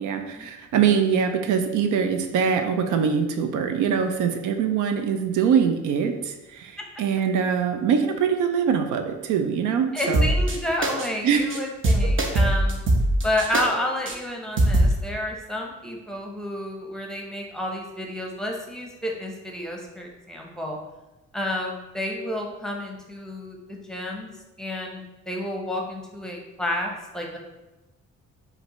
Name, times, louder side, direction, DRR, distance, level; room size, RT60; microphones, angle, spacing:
voice 1, 0.0-10.3 11.2-11.5, right 7 dB, 80° right, 7 dB, 0.5 m, -23 dB
voice 2, 9.9-12.8 13.2-20.8 21.3-24.3 24.6-27.4, left 1 dB, ahead, 0 dB, 0.8 m, -30 dB
sound 1, 10.0-10.6 10.8-11.1 11.3-11.6 11.8-13.6 14.1-14.2 14.6-14.9, right 1 dB, 40° right, 0.8 m, -21 dB
5.0 x 2.6 x 3.0 m, 1.1 s
cardioid pair, 90°, 30 cm